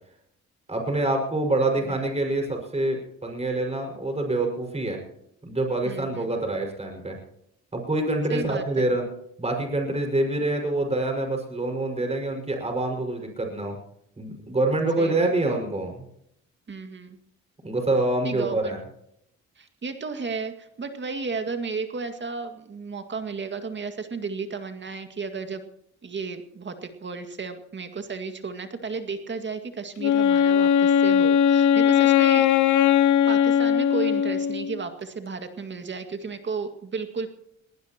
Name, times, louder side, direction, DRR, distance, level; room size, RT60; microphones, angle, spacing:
voice 1, 0.7-5.0 5.4-7.2 7.7-9.1 9.4-13.8 14.2-16.0 17.6-18.8, right 2 dB, 20° right, 2 dB, 5.6 m, -26 dB
voice 2, 5.8-6.3 8.3-8.6 15.0-15.3 16.7-17.2 18.2-18.8 19.6-25.7 26.0-32.5 33.3-37.3, right 4 dB, 40° right, 7 dB, 2.0 m, -33 dB
Wind instrument woodwind instrument, 30.0-34.8, left 9 dB, 70° left, 1.0 m, -19 dB
20.0 x 19.0 x 3.0 m, 0.76 s
cardioid pair, 90°, 30 cm